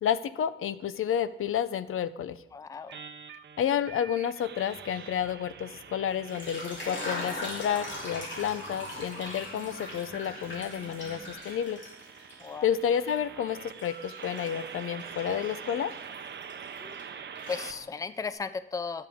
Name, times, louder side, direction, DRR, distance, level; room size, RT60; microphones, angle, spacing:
voice 1, 0.0-2.4 3.6-11.8 12.6-15.9, left 9 dB, 75° left, 14 dB, 0.5 m, -30 dB
voice 2, 2.5-3.0 12.4-12.7 16.8-19.1, left 5 dB, 15° left, 13 dB, 0.4 m, -36 dB
sound 1, 2.9-17.7, right 7 dB, 55° right, 0.7 m, -45 dB
sound 2, 4.6-11.3, right 4 dB, 70° right, 1.0 m, -53 dB
sound 3, 6.1-12.5 12.9-17.0 17.3-18.2, left 1 dB, 60° left, 3.1 m, -41 dB
17.0 x 6.7 x 3.6 m, 0.81 s
wide cardioid pair, 145°, 21 cm